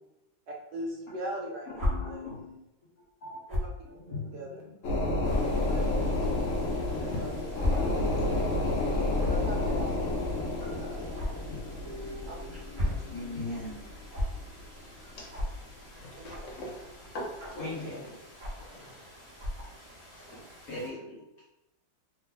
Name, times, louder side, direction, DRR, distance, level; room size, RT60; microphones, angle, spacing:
voice 1, 0.5-2.3 3.5-3.6 4.3-4.6 5.7-5.9 7.0-7.3 7.7-8.3 8.9-10.1 10.6-11.4 12.3-12.4 16.1-16.5, right 1 dB, 75° right, -1 dB, 1.1 m, -41 dB
sound 1, 1.7-1.9 3.5-3.7 4.5-4.6 5.2-5.4 6.4-6.6 7.6-7.7 8.0-8.2 9.2-9.5 11.1-11.3 12.5-13.0 14.1-14.3 15.3-15.5 16.3-16.5 17.4-17.6 18.4-18.7 19.4-19.6, left 1 dB, 45° right, 0.6 m, -31 dB
voice 2, 1.8-2.6 3.2-3.4 3.8-4.7 7.8-7.9 10.6-10.7 11.5-13.9 15.0-15.1 17.6-18.1 20.7-21.2, left 2 dB, 50° left, -7 dB, 1.5 m, -40 dB
sound 2, 4.8-14.8 15.2-15.3, left 2 dB, 90° left, 0.7 m, -30 dB
sound 3, 5.2-20.9, equal, 35° left, 0.5 m, -52 dB
voice 3, 6.6-7.2 8.2-8.8 9.5-9.9 12.8-13.0 14.7-14.8 15.2-15.4 15.8-18.1 18.5-19.4 20.1-20.5, left 1 dB, 70° left, -2 dB, 1.3 m, -45 dB
3.2 x 2.0 x 3.9 m, 0.91 s
omnidirectional pair, 2.2 m